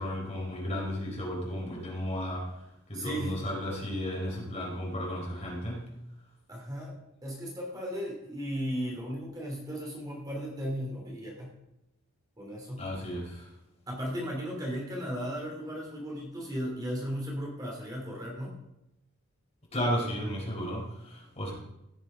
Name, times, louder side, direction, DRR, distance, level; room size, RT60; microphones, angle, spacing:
voice 1, 0.0-2.5 2.9-5.8 12.8-13.5 19.7-21.5, equal, 30° left, -2 dB, 4.3 m, -33 dB
voice 2, 2.9-3.4 6.5-11.5 12.4-12.9 13.9-18.6, equal, 20° right, -2 dB, 2.7 m, -36 dB
16.5 x 6.9 x 5.0 m, 0.88 s
head